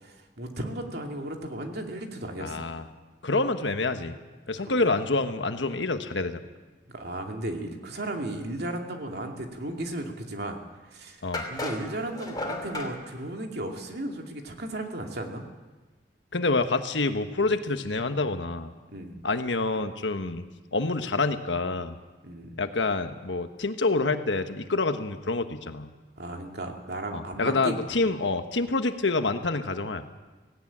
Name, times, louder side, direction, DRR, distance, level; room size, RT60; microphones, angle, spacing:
voice 1, 0.0-2.7 4.6-4.7 6.9-10.6 10.8-15.5 18.9-19.1 22.2-22.6 26.2-28.2, right 1 dB, 60° right, 3 dB, 2.5 m, -35 dB
voice 2, 2.4-2.8 3.2-4.1 4.5-6.4 11.2-11.4 16.3-18.7 19.2-20.4 20.7-22.0 22.6-25.9 27.1-30.0, left 3 dB, 85° left, 8 dB, 1.3 m, -27 dB
sound 1, 10.5-10.6 11.3-12.9, left 1 dB, 20° left, 2.9 m, -34 dB
17.5 x 17.5 x 8.8 m, 1.2 s
head